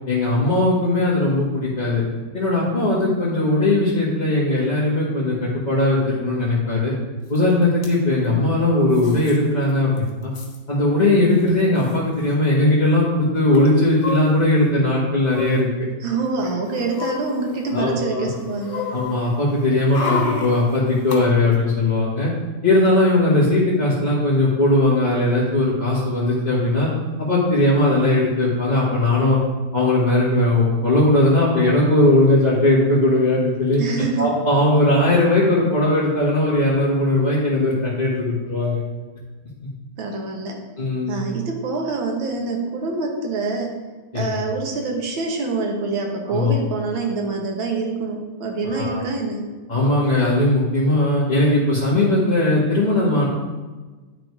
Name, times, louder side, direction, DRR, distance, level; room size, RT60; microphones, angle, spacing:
voice 1, 0.1-2.0 2.3-6.9 7.3-10.3 10.7-15.7 17.7-18.3 18.9-22.3 22.6-26.9 27.2-29.4 29.7-33.8 34.2-38.8 40.8-41.2 44.1-44.4 46.3-46.6 48.7-49.0 49.7-53.3, left 2 dB, 20° left, -10 dB, 1.8 m, -19 dB
sound 1, 7.4-7.5 7.6-7.9 8.9-9.4 9.7-9.8 10.0-10.6 11.4-11.5 11.8-12.0 13.5-14.7 15.3-15.6 16.3-17.9 18.3-21.2 21.5-21.6, left 3 dB, 85° left, 2.5 m, -30 dB
voice 2, 16.0-18.9 33.8-34.3 40.0-40.6 41.1-43.8 44.1-49.5, right 3 dB, 80° right, 1 dB, 2.0 m, -26 dB
11.0 x 3.8 x 4.8 m, 1.3 s
omnidirectional pair, 2.2 m